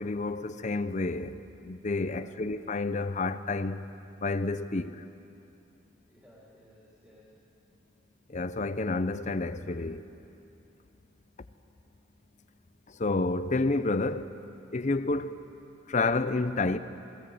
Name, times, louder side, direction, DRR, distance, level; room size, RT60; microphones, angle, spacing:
voice 1, 0.0-3.8 4.2-5.0 8.3-10.0 12.9-14.3 14.7-15.4 15.9-16.8, left 3 dB, 35° left, 0.6 m, -30 dB
voice 2, 2.0-2.4 6.1-7.4, equal, 10° right, 2.9 m, -57 dB
20.5 x 17.0 x 7.8 m
head